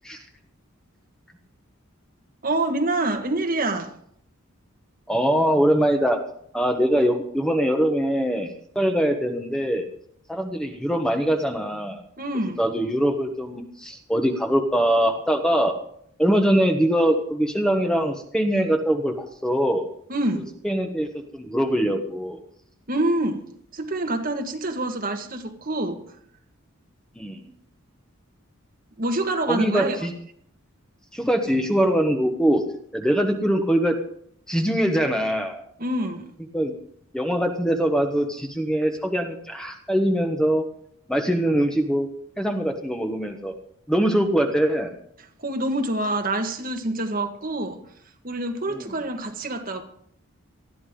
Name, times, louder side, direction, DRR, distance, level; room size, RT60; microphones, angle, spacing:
voice 1, 2.4-3.9 12.2-12.6 20.1-20.5 22.9-23.4 23.7-26.0 29.0-30.1 35.8-36.3 45.4-47.8 48.2-49.8, right 2 dB, 40° right, 1.6 m, -26 dB
voice 2, 5.1-6.2 6.5-9.9 10.3-12.0 12.6-15.7 16.2-19.9 20.6-22.4 27.2-27.5 29.5-30.1 31.1-32.6 32.9-34.0 34.5-35.6 36.5-36.7 37.1-40.6 41.1-42.1 42.4-43.5 43.9-45.0 48.7-48.9, equal, 5° left, 1.2 m, -22 dB
19.5 x 13.5 x 3.8 m
head